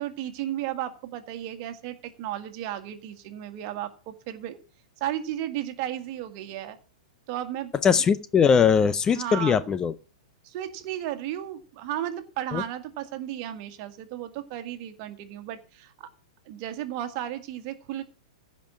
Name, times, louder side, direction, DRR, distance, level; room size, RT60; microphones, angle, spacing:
voice 1, 0.0-4.6 5.0-6.8 7.3-7.7 9.2-9.7 10.4-16.1 16.5-18.0, right 12 dB, 40° right, 1.8 m, -34 dB
voice 2, 7.8-9.9 12.5-12.6, left 7 dB, 20° left, 0.6 m, -21 dB
15.5 x 5.3 x 7.4 m
figure-of-eight pair, 105°, 4 cm